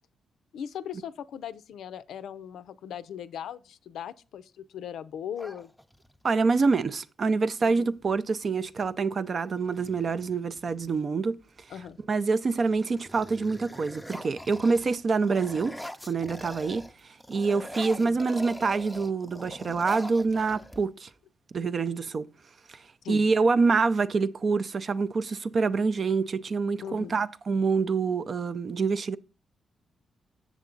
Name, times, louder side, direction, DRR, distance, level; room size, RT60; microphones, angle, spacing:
voice 1, 0.5-5.7 7.6-7.9 11.7-12.0 16.5-16.6 18.0-18.2 19.6-19.8 23.0-23.3 26.8-27.2, left 9 dB, 85° left, 0.4 m, -39 dB
sound 1, 5.3-6.3 8.0-8.1 8.4-8.9 9.5-11.0 11.6-12.0 12.4-16.9 17.2-21.1, equal, ahead, 0.5 m, -43 dB
voice 2, 6.2-11.4 12.1-15.8 16.1-16.9 17.3-21.1 21.5-22.3 23.1-29.2, right 4 dB, 45° right, 0.5 m, -26 dB
7.3 x 6.7 x 3.8 m
cardioid pair, 90°, 0 cm